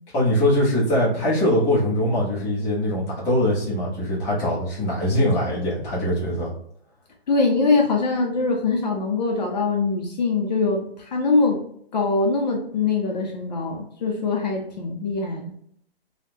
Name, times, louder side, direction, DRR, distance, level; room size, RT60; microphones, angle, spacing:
voice 1, 0.1-6.5, left 1 dB, 10° left, -8 dB, 0.7 m, -22 dB
voice 2, 7.3-11.6 11.9-15.5, left 3 dB, 45° left, 1 dB, 0.7 m, -23 dB
3.5 x 2.3 x 2.8 m, 0.67 s
hypercardioid pair, 155°, 31 cm